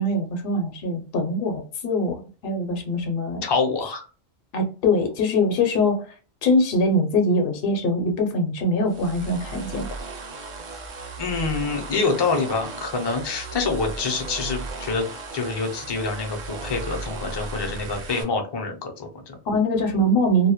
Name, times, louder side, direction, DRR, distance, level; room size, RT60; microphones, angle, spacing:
voice 1, 0.0-3.4 4.5-6.1 6.4-9.9 19.5-20.5, left 1 dB, 65° left, 3 dB, 0.7 m, -23 dB
voice 2, 3.4-4.1 11.2-15.1 15.3-19.3, left 4 dB, 40° left, 3 dB, 0.4 m, -26 dB
sound 1, 8.9-18.2, right 3 dB, 55° right, 0.6 m, -36 dB
2.2 x 2.0 x 2.8 m, 0.36 s
omnidirectional pair, 1.1 m